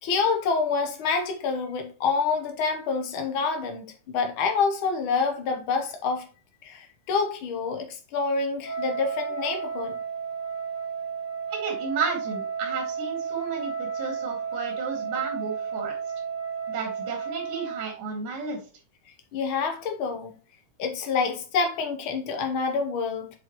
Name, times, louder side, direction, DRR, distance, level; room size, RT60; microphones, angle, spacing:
voice 1, 0.0-6.3 6.6-10.0 19.3-20.4 20.8-23.3, left 4 dB, 85° left, 1.1 m, -27 dB
Wind instrument woodwind instrument, 8.6-18.0, right 6 dB, 55° left, 2.4 m, -33 dB
voice 2, 11.5-15.9 16.7-18.6, right 5 dB, 90° right, 3.4 m, -33 dB
8.3 x 5.1 x 3.0 m
omnidirectional pair, 3.7 m